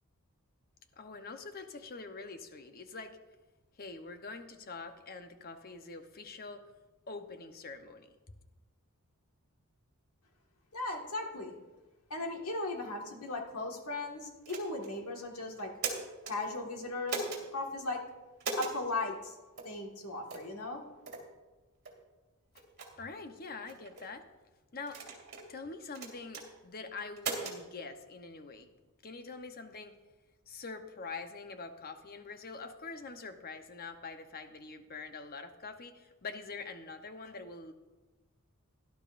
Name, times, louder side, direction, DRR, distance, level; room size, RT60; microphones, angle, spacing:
voice 1, 1.0-3.2 3.8-6.6 7.1-8.4 22.5-22.6 23.0-24.2 24.7-25.0 25.5-28.7 29.0-29.9 30.5-37.7, left 4 dB, 45° left, 7 dB, 0.8 m, -45 dB
voice 2, 10.7-11.5 12.1-15.7 16.3-18.0 18.6-19.4 19.6-20.8, left 2 dB, 85° left, 2 dB, 1.7 m, -37 dB
sound 1, 14.5-14.9 15.6-16.4 17.1-17.4 18.4-18.8 19.6-19.7 20.3-20.5 21.1-21.3 21.9-22.0 22.6-22.9 23.7-24.1 24.9-25.5 26.0-26.5 27.2-27.6, right 4 dB, 45° right, 2.5 m, -38 dB
17.5 x 11.5 x 2.5 m, 1.2 s
head